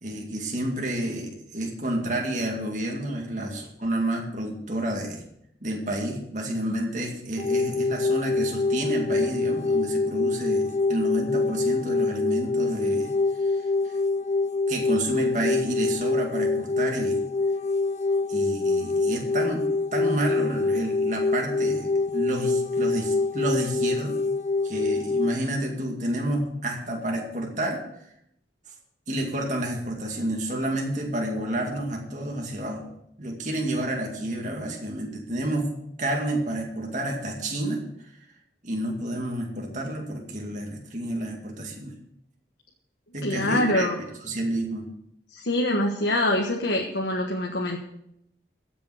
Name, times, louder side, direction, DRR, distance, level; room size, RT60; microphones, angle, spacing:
voice 1, 0.0-5.2 5.6-13.1 13.4-13.9 14.7-17.2 18.3-24.2 24.6-27.8 29.1-32.9 33.2-35.7 36.0-38.1 38.6-41.9 43.1-43.9 44.2-44.9, right 1 dB, 45° right, 0 dB, 2.2 m, -30 dB
sound 1, 7.4-25.4, left 3 dB, 40° left, 0.4 m, -25 dB
voice 2, 43.2-44.0 45.3-47.8, left 1 dB, 80° left, 1 dB, 1.4 m, -24 dB
16.0 x 7.0 x 6.4 m, 0.78 s
head